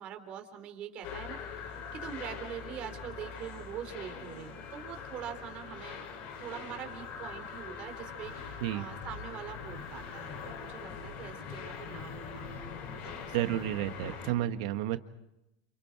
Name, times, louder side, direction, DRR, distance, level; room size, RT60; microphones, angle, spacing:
voice 1, 0.0-6.0 6.4-12.5 12.8-14.5, right 9 dB, 40° right, 5 dB, 3.7 m, -44 dB
sound 1, 1.0-14.3, left 6 dB, 55° left, 5.7 m, -43 dB
voice 2, 13.3-15.0, right 13 dB, 70° right, 10 dB, 1.5 m, -31 dB
29.0 x 28.5 x 4.8 m, 0.89 s
supercardioid pair, 125°, 3 cm